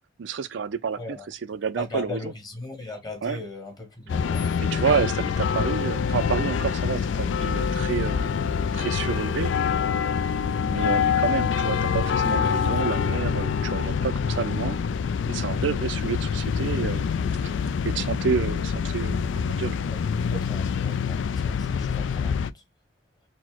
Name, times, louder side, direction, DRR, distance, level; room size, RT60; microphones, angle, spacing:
voice 1, 0.2-1.0 1.3-2.2 3.2-3.4 4.6-8.3 8.7-9.5 10.7-14.8 15.3-17.1 17.4-17.5 17.8-19.8, right 6 dB, 75° right, 0.4 m, -29 dB
voice 2, 1.0-1.3 1.8-4.4 19.9-22.6, left 2 dB, 20° left, 1.2 m, -38 dB
sound 1, 4.1-22.5, left 6 dB, 80° left, 0.3 m, -25 dB
4.1 x 2.1 x 4.4 m
head